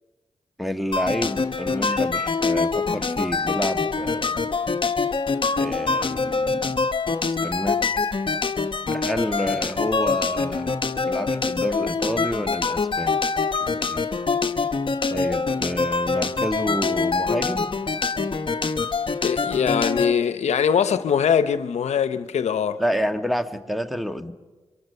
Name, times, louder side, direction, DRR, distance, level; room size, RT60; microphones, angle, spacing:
voice 1, 0.6-4.5 5.5-6.8 7.3-7.8 8.9-10.7 11.0-13.2 13.6-14.0 15.1-17.7 22.8-24.3, equal, ahead, 1.4 m, -29 dB
sound 1, 0.9-20.1, left 4 dB, 50° left, 1.0 m, -24 dB
voice 2, 19.2-22.8, left 7 dB, 85° left, 0.8 m, -22 dB
26.5 x 23.0 x 6.7 m
cardioid pair, 50°, 11 cm